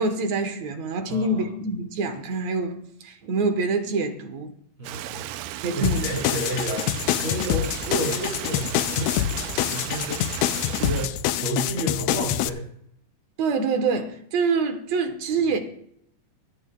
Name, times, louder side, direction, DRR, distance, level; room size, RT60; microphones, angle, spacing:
voice 1, 0.0-4.5 5.6-6.1 13.4-15.6, right 3 dB, 65° right, 2.4 m, -26 dB
voice 2, 1.1-1.4 4.8-5.5 5.7-12.7, right 1 dB, 45° right, 2.4 m, -31 dB
Stream, 4.8-11.1, right 13 dB, 90° right, 2.2 m, -35 dB
sound 1, 5.8-12.5, left 12 dB, 85° left, 1.5 m, -26 dB
24.5 x 8.8 x 2.3 m
omnidirectional pair, 3.6 m